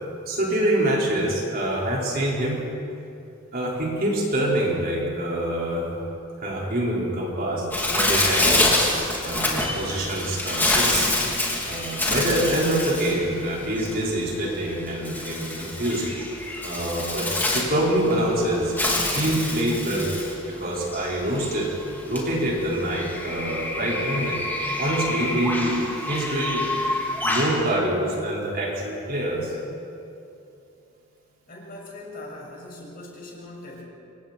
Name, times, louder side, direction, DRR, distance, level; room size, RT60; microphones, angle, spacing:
voice 1, 0.3-2.6 3.5-6.0 6.4-7.7 7.9-8.8 9.2-11.1 11.6-16.0 16.6-18.7 19.1-20.1 20.4-21.7 22.0-24.4 24.8-26.6 27.2-29.6, right 1 dB, 50° right, -4 dB, 5.2 m, -25 dB
Bird, 7.7-27.6, left 1 dB, 10° left, 3.2 m, -27 dB
voice 2, 31.5-33.8, left 2 dB, 45° left, -2 dB, 6.5 m, -40 dB
28.5 x 24.0 x 4.6 m, 2.7 s
head